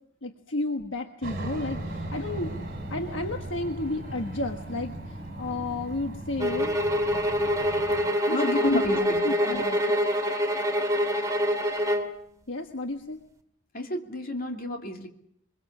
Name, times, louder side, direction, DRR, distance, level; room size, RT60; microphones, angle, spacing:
voice 1, 0.2-6.8 8.3-8.9 9.2-10.0 12.5-13.2, left 2 dB, 60° left, 4 dB, 1.4 m, -32 dB
Aircraft, 1.2-8.1, right 1 dB, 45° right, 5.8 m, -37 dB
sound 1, 1.5-5.8, right 3 dB, 10° left, 4.6 m, -49 dB
sound 2, 6.4-12.2, equal, 15° right, 2.2 m, -25 dB
voice 2, 8.3-9.6 13.7-15.1, left 1 dB, 45° left, 3 dB, 2.9 m, -31 dB
23.5 x 22.5 x 7.3 m, 0.71 s
head